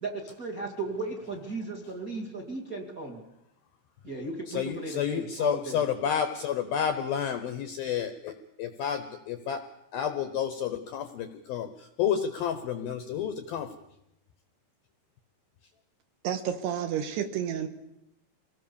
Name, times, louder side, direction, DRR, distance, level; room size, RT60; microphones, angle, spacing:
voice 1, 0.0-3.2 4.0-5.8, right 3 dB, 35° right, 2 dB, 1.5 m, -36 dB
voice 2, 4.5-9.6 9.9-13.8, left 8 dB, 75° left, 9 dB, 2.2 m, -30 dB
voice 3, 16.2-17.7, right 9 dB, 70° right, 8 dB, 3.1 m, -30 dB
25.5 x 18.5 x 7.0 m, 0.85 s
omnidirectional pair, 5.5 m